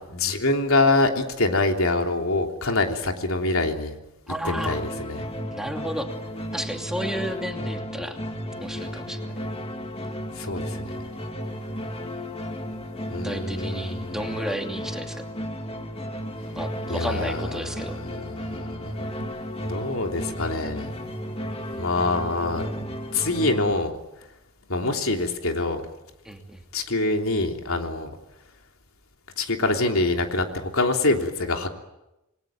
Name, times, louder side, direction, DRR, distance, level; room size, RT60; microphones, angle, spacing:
voice 1, 0.1-3.9 4.4-5.2 10.3-10.9 13.1-14.2 16.9-19.3 19.7-20.9 21.8-24.0 24.7-25.8 26.7-28.1 29.4-31.7, left 2 dB, 75° left, 3 dB, 3.3 m, -25 dB
voice 2, 4.3-4.8 5.5-6.1 6.5-8.2 8.6-9.2 13.2-15.3 16.6-18.0 26.2-26.6, right 1 dB, 5° right, 3 dB, 2.6 m, -32 dB
sound 1, 4.6-23.7, equal, 25° left, 2.4 m, -34 dB
28.0 x 21.5 x 9.4 m, 0.94 s
head